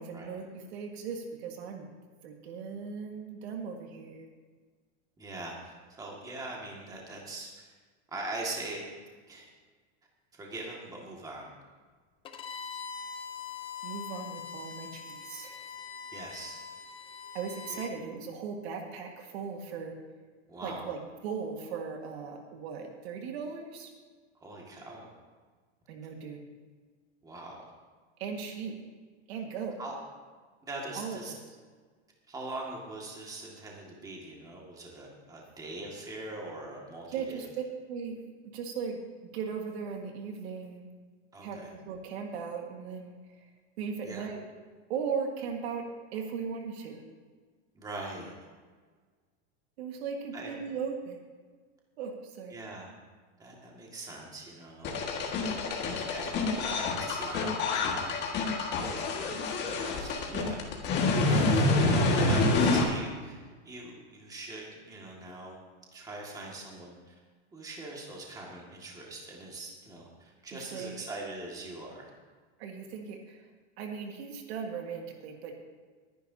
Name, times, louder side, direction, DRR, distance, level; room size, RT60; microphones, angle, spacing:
voice 1, 0.0-1.9 2.2-4.3 13.8-15.7 17.3-20.0 20.6-23.9 25.9-26.4 28.2-28.8 29.3-29.8 30.9-31.4 37.1-37.5 37.9-38.2 38.4-39.0 39.3-40.9 41.4-43.5 43.8-44.4 44.9-47.0 49.8-51.2 52.0-52.6 60.3-60.6 61.2-61.7 62.2-62.3 70.5-71.1 72.6-73.5 73.8-75.6, right 6 dB, 65° right, 3 dB, 1.8 m, -38 dB
voice 2, 5.2-7.7 8.1-8.9 9.3-9.5 10.3-11.5 16.1-16.6 17.7-17.8 20.5-20.9 24.4-25.1 27.2-27.6 29.8-30.0 30.6-31.3 32.3-37.4 41.3-41.7 44.0-44.3 47.7-48.3 50.3-50.5 52.5-52.9 53.4-55.0 55.9-57.5 59.8-60.6 61.8-65.6 65.9-67.1 67.5-72.1, right 2 dB, 10° right, -2 dB, 2.0 m, -42 dB
Bowed string instrument, 12.2-17.9, left 6 dB, 15° left, 0.5 m, -42 dB
sound 1, 54.8-62.8, left 3 dB, 30° left, 1.8 m, -27 dB
21.5 x 10.5 x 2.8 m, 1.5 s
supercardioid pair, 160°, 35 cm